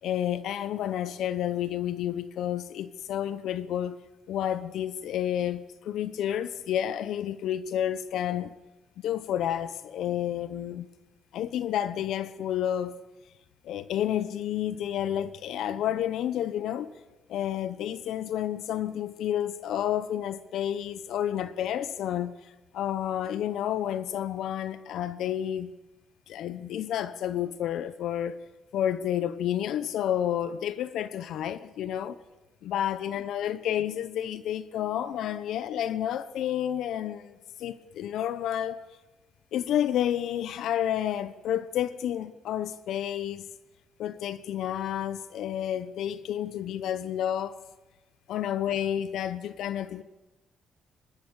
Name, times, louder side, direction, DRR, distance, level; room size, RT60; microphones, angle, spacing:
voice 1, 0.0-4.0 4.3-8.5 9.0-10.9 11.3-12.9 13.6-16.9 17.3-25.7 26.3-28.4 28.7-32.2 32.6-37.3 37.6-38.8 39.5-43.5 44.0-47.6 48.3-50.0, left 10 dB, 80° left, 0.9 m, -30 dB
25.0 x 13.0 x 8.8 m
cardioid pair, 90°, 0 cm